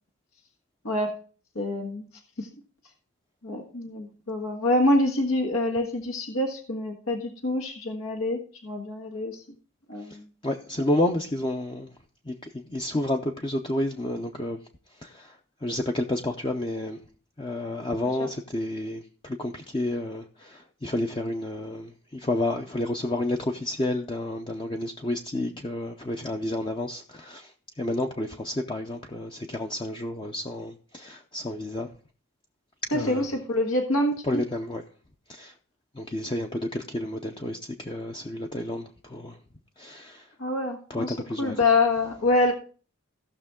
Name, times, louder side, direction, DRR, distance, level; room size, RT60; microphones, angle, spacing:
voice 1, 0.8-1.2 1.5-2.0 2.4-2.5 3.4-9.4 9.9-10.2 18.2-18.3 32.9-34.4 40.4-42.5, left 2 dB, 90° left, 1.5 m, -26 dB
voice 2, 10.4-11.9 12.3-14.6 15.0-17.0 17.4-31.9 32.9-33.3 34.2-34.8 35.3-35.5 35.9-39.4 39.8-40.3 40.9-41.6, left 1 dB, 25° left, 0.5 m, -30 dB
16.5 x 6.1 x 3.6 m
head